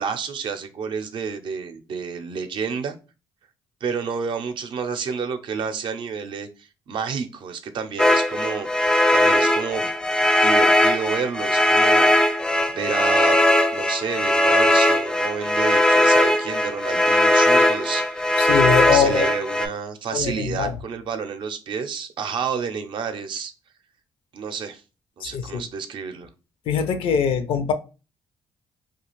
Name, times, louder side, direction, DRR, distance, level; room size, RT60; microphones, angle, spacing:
voice 1, 0.0-3.0 3.8-8.7 9.1-9.9 10.4-12.1 12.7-13.4 13.7-18.4 18.9-23.5 24.3-24.8 25.2-26.3, right 6 dB, 60° right, 0.5 m, -30 dB
sound 1, 8.0-19.7, left 1 dB, 10° left, 0.3 m, -19 dB
voice 2, 18.4-19.3 20.1-20.7 25.2-25.6 26.7-27.7, left 7 dB, 70° left, 0.5 m, -22 dB
2.4 x 2.3 x 3.0 m
supercardioid pair, 70°, 9 cm